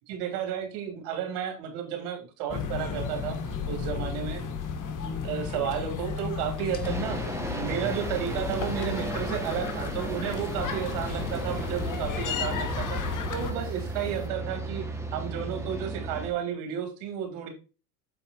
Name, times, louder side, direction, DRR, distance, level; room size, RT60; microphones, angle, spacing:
voice 1, 0.1-4.4 5.0-7.2 7.5-13.0 13.3-14.8 15.1-17.5, right 9 dB, 75° right, 4 dB, 2.9 m, -32 dB
square yard atmosphere, 2.5-13.5, left 6 dB, 45° left, 1.6 m, -33 dB
sound 1, 6.8-16.3, right 2 dB, 5° right, 1.5 m, -35 dB
FP Diesel Tractor Driving, 7.8-14.3, equal, 10° left, 1.4 m, -44 dB
7.9 x 4.5 x 4.0 m, 0.33 s
supercardioid pair, 95°, 44 cm